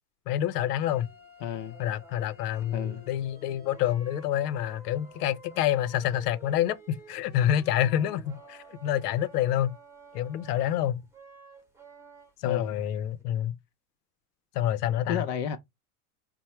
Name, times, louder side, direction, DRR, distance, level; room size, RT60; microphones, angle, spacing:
voice 1, 0.3-1.1 1.8-9.8 10.1-11.0 12.4-13.6 14.5-15.2, left 11 dB, 90° left, 0.7 m, -27 dB
sound 1, 0.7-12.6 12.9-13.2, right 2 dB, 5° right, 1.0 m, -52 dB
voice 2, 1.4-1.8 2.7-3.0 12.4-12.8 15.1-15.6, left 8 dB, 45° left, 0.8 m, -32 dB
4.5 x 2.1 x 4.2 m
supercardioid pair, 120°, 45 cm